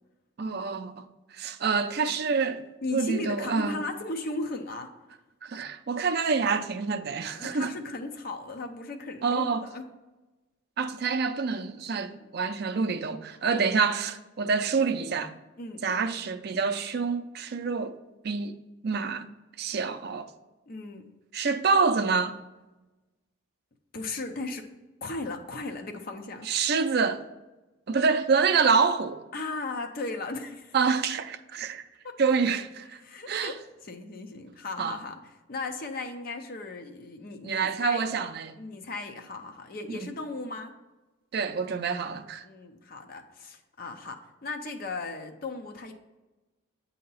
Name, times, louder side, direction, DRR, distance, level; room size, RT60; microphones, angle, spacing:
voice 1, 0.4-1.1 1.3-2.6 2.9-3.8 5.4-7.7 9.2-9.7 10.8-15.3 15.8-18.0 18.2-19.3 19.6-20.3 21.3-22.4 26.4-27.2 27.9-29.2 30.7-31.8 32.2-33.0 33.3-33.5 34.8-35.0 37.4-38.6 39.9-40.1 41.3-42.4, right 5 dB, 50° right, 0.4 m, -27 dB
voice 2, 2.8-4.9 7.3-9.8 12.2-12.3 15.6-16.2 20.7-21.1 23.9-24.6 25.0-26.5 29.3-30.8 32.0-32.1 33.0-33.6 33.8-35.2 35.5-38.2 38.6-40.7 42.4-45.9, left 3 dB, 45° left, 0.6 m, -36 dB
7.6 x 2.8 x 5.4 m
head